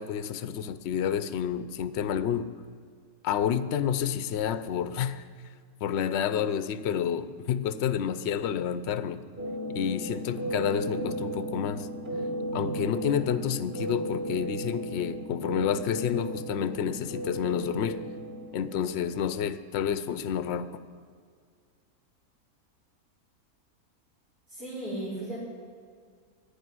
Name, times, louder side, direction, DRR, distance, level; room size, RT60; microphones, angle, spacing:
voice 1, 0.0-2.5 3.2-5.2 5.8-9.2 9.7-11.9 12.5-18.0 18.5-20.7, left 8 dB, 60° left, 13 dB, 0.8 m, -29 dB
sound 1, 9.4-18.7, right 1 dB, 35° right, 2.8 m, -35 dB
voice 2, 24.5-25.4, right 1 dB, 80° right, -8 dB, 5.4 m, -35 dB
12.0 x 10.5 x 9.4 m, 2.1 s
omnidirectional pair, 1.6 m